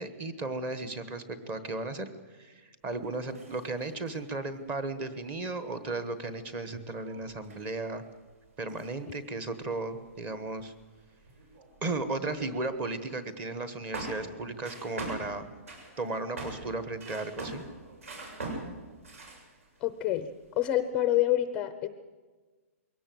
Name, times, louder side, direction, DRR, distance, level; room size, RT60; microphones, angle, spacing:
voice 1, 0.0-2.1 2.4-8.0 8.6-10.7 11.8-15.5 16.0-17.6, right 3 dB, 20° right, 11 dB, 1.2 m, -35 dB
sound 1, 2.9-4.3 4.8-4.9 5.2-5.3 5.6-12.9 13.2-13.3 13.9-19.8 20.1-20.7, right 2 dB, 70° right, 7.5 m, -44 dB
voice 2, 19.8-21.9, left 13 dB, 15° left, 11 dB, 0.7 m, -27 dB
22.0 x 17.5 x 7.7 m, 1.3 s
hypercardioid pair, 175°, 8 cm